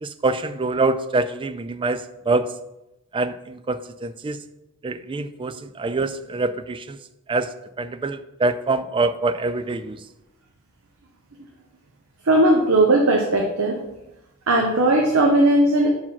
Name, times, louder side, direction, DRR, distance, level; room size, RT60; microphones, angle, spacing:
voice 1, 0.0-2.5 3.1-4.4 4.8-7.0 7.3-10.0, right 3 dB, 25° right, 12 dB, 0.4 m, -25 dB
voice 2, 12.2-13.9 14.5-15.9, right 1 dB, 75° right, 1 dB, 0.9 m, -18 dB
5.7 x 4.8 x 5.7 m, 0.92 s
head